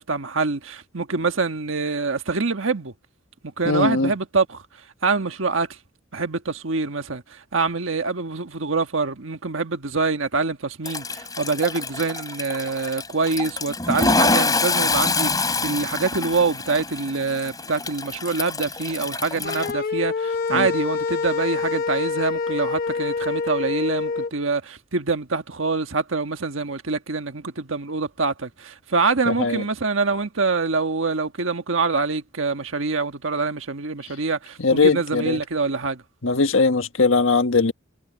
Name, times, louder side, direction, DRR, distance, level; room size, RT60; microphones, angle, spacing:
voice 1, 0.0-2.9 3.4-4.6 5.0-5.8 6.1-36.0, right 4 dB, 80° right, 1.4 m, -25 dB
voice 2, 3.6-4.1 20.5-20.7 29.3-29.6 34.6-35.4 36.2-37.7, left 4 dB, 85° left, 1.5 m, -20 dB
Toilet flush, 10.9-19.7, left 3 dB, 20° left, 3.4 m, -26 dB
sound 1, 19.4-24.3, left 4 dB, 50° left, 0.8 m, -26 dB
head